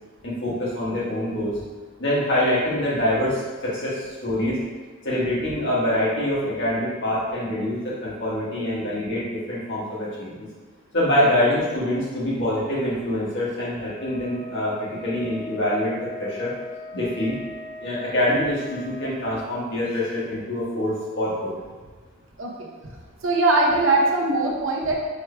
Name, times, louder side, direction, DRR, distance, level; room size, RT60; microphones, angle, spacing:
voice 1, 0.2-1.5 2.0-4.6 5.0-10.5 10.9-16.5 16.9-17.3 17.8-21.5, left 1 dB, 60° left, -7 dB, 1.5 m, -25 dB
Wind instrument woodwind instrument, 13.9-19.2, left 1 dB, 25° left, 0.7 m, -39 dB
voice 2, 23.2-24.9, right 2 dB, 65° right, -1 dB, 0.7 m, -21 dB
4.7 x 4.6 x 2.2 m, 1.4 s
head